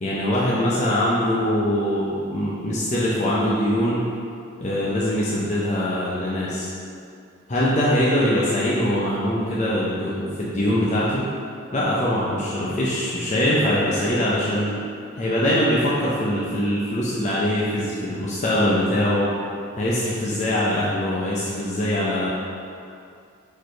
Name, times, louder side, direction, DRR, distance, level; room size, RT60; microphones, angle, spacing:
voice 1, 0.0-4.1 4.6-6.7 7.5-11.2 11.7-14.8 15.2-19.2 19.8-22.3, left 1 dB, 35° left, -7 dB, 0.7 m, -22 dB
4.8 x 4.7 x 4.5 m, 2.4 s
head